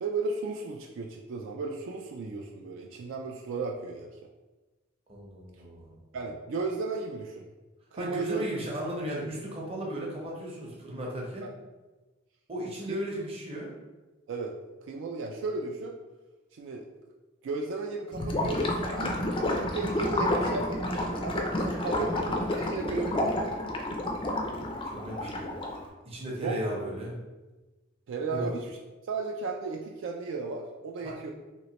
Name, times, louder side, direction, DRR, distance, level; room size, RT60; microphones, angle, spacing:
voice 1, 0.0-4.2 6.1-7.5 7.9-8.4 11.4-11.5 12.9-13.0 14.3-16.0 16.5-16.9 17.4-23.6 26.4-26.6 28.1-28.7 29.0-31.3, right 3 dB, 65° right, 1 dB, 0.3 m, -35 dB
voice 2, 5.1-6.0 7.9-11.4 12.5-13.7 21.9-22.2 24.8-25.5 26.0-27.1 28.3-28.5 31.0-31.2, equal, 30° right, -3 dB, 0.7 m, -35 dB
Gurgling / Liquid, 18.1-25.9, left 1 dB, 25° left, 0.3 m, -30 dB
3.1 x 3.0 x 2.9 m, 1.2 s
head